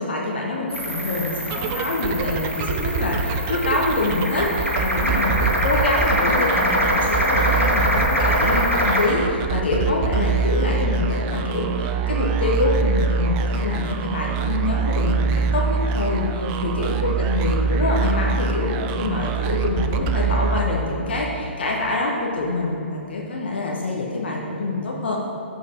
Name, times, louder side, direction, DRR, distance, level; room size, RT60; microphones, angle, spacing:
voice 1, 0.0-25.2, left 2 dB, 55° left, -2 dB, 1.0 m, -25 dB
sound 1, 0.7-9.1, equal, 90° right, 1.2 m, -23 dB
sound 2, 1.4-21.1, right 5 dB, 25° right, 0.4 m, -24 dB
7.1 x 4.5 x 5.8 m, 2.7 s
figure-of-eight pair, 120°, 7 cm